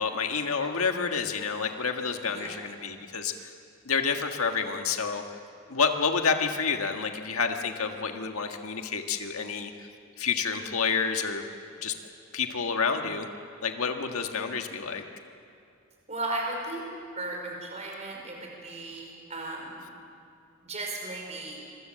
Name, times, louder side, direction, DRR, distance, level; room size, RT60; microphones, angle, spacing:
voice 1, 0.0-3.5 3.8-5.2 5.7-9.7 10.2-11.4 11.8-11.9 12.3-13.3 13.6-15.0, left 5 dB, 80° left, 4 dB, 1.6 m, -29 dB
voice 2, 16.1-16.8 17.1-19.9 20.6-21.6, right 2 dB, 30° right, 0 dB, 5.2 m, -35 dB
26.5 x 23.5 x 7.5 m, 2.5 s
head